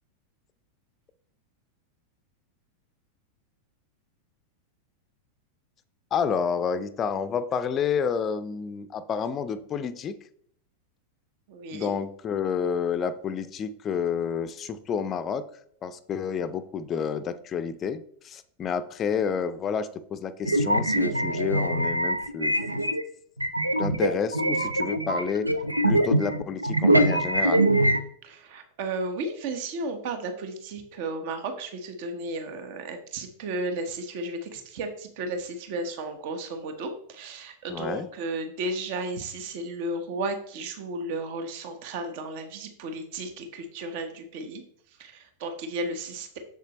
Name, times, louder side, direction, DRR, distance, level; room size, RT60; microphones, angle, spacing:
voice 1, 6.1-10.2 11.7-15.5 15.8-22.5 23.8-25.5 25.8-27.7 37.7-38.1, left 6 dB, 25° left, 12 dB, 0.5 m, -29 dB
voice 2, 11.5-11.9 28.2-44.6 45.0-46.4, right 2 dB, 50° right, 7 dB, 1.1 m, -34 dB
sound 1, 20.5-23.0 23.4-28.0, right 1 dB, 85° right, 0.5 m, -23 dB
7.3 x 7.2 x 3.0 m, 0.64 s
figure-of-eight pair, 90°, 0 cm